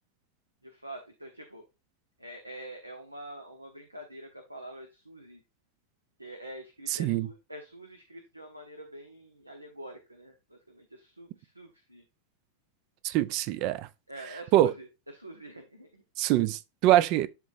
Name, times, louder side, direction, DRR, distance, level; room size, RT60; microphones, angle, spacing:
voice 1, 0.6-1.6 2.2-5.4 6.2-12.0 14.1-16.0, right 1 dB, 85° right, 1.0 m, -46 dB
voice 2, 6.9-7.3 13.0-13.9 14.5-14.7 16.2-17.3, right 14 dB, 40° right, 0.5 m, -24 dB
12.0 x 4.0 x 2.6 m
figure-of-eight pair, 90°, 0 cm